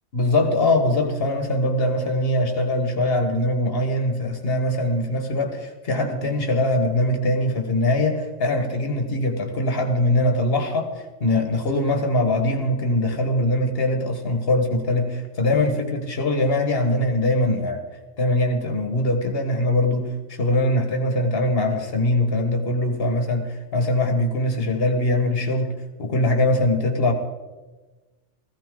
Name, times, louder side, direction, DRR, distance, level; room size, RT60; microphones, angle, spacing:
voice 1, 0.1-10.9 11.2-17.8 18.2-25.7 26.0-27.1, left 1 dB, 55° left, 5 dB, 1.8 m, -22 dB
15.5 x 15.5 x 3.8 m, 1.2 s
omnidirectional pair, 1.2 m